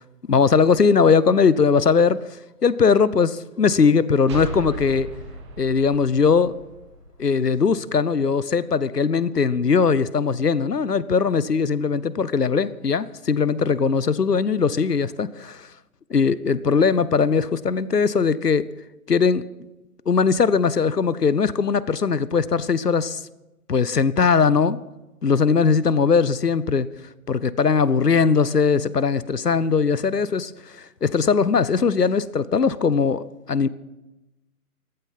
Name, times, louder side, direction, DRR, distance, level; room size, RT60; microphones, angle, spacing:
voice 1, 0.3-2.2 2.6-5.1 5.6-6.6 7.2-15.7 16.1-18.6 19.1-19.4 20.1-23.2 23.7-24.8 25.2-26.9 27.3-33.7, left 5 dB, 85° left, 18 dB, 0.9 m, -20 dB
sound 1, 4.3-7.8, right 1 dB, 20° right, 1.4 m, -37 dB
14.5 x 14.5 x 5.6 m, 1.0 s
figure-of-eight pair, 145°, 46 cm